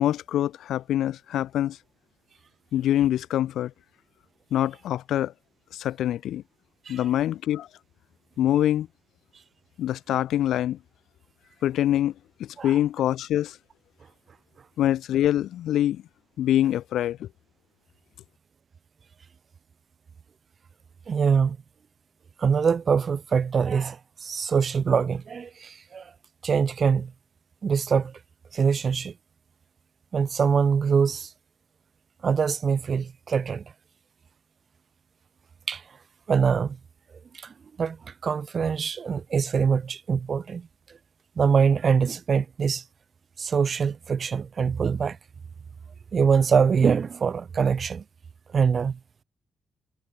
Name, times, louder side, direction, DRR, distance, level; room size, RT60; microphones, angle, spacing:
voice 1, 0.0-1.8 2.7-3.7 4.5-5.3 5.7-6.4 6.9-7.7 8.4-8.9 9.8-10.8 11.6-12.1 12.4-13.6 14.8-16.0 16.4-17.3, left 12 dB, 80° left, 0.6 m, -24 dB
voice 2, 21.1-21.6 22.4-26.1 26.4-27.1 27.6-28.2 28.5-29.1 30.1-31.3 32.2-33.6 35.7-35.8 36.3-36.8 37.3-40.7 41.4-42.8 43.4-45.2 46.1-48.0 48.5-49.0, right 6 dB, 35° right, 0.8 m, -24 dB
cardioid pair, 160°, 0 cm